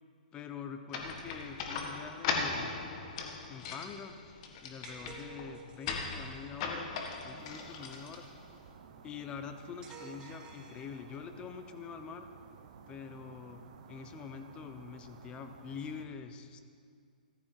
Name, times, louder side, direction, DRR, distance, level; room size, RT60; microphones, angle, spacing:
voice 1, 0.3-2.7 3.5-4.2 4.6-6.9 7.2-8.2 9.0-12.3 12.9-13.6 13.9-16.6, left 6 dB, 20° left, 8 dB, 0.9 m, -45 dB
sound 1, 0.9-8.6, left 4 dB, 40° left, 1.6 m, -39 dB
sound 2, 4.8-6.0 9.8-11.4, right 6 dB, 15° right, 1.3 m, -51 dB
sound 3, 7.4-16.1, right 6 dB, 50° right, 1.2 m, -55 dB
14.5 x 13.0 x 4.7 m, 2.2 s
hypercardioid pair, 140°, 5 cm